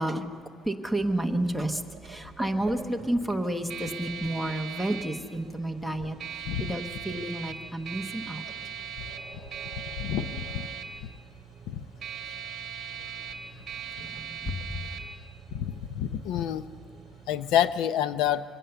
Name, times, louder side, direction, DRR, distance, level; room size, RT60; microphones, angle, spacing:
voice 1, 0.0-8.5 13.7-15.1, right 1 dB, ahead, 8 dB, 1.0 m, -31 dB
sound 1, 1.0-17.8, right 7 dB, 30° right, 2.2 m, -40 dB
voice 2, 10.0-10.7 11.7-11.8 15.5-16.6 17.3-18.4, left 10 dB, 90° left, 14 dB, 0.7 m, -28 dB
23.5 x 17.5 x 6.9 m, 2.2 s
cardioid pair, 165°, 0 cm